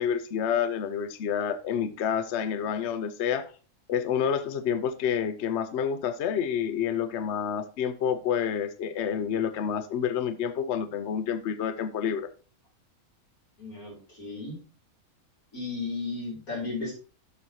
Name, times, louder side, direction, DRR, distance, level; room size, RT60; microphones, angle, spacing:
voice 1, 0.0-3.5 3.9-12.3, left 8 dB, 60° left, 0.8 m, -28 dB
voice 2, 13.6-14.6 15.5-16.9, left 3 dB, 80° left, 4.4 m, -34 dB
12.5 x 6.3 x 2.8 m
omnidirectional pair, 1.5 m